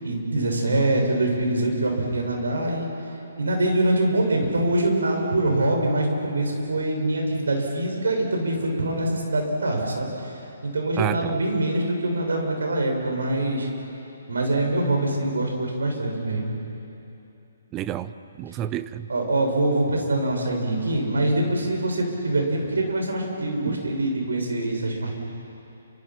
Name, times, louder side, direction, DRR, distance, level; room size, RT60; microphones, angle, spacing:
voice 1, 0.0-2.9 3.4-13.7 14.3-16.5 19.1-25.1, right 1 dB, 85° right, 1 dB, 6.3 m, -24 dB
voice 2, 11.0-11.4 17.7-18.1 18.4-19.1 23.7-23.9, right 11 dB, 20° right, 14 dB, 0.7 m, -29 dB
29.0 x 26.0 x 5.9 m, 2.9 s
hypercardioid pair, 150°, 0 cm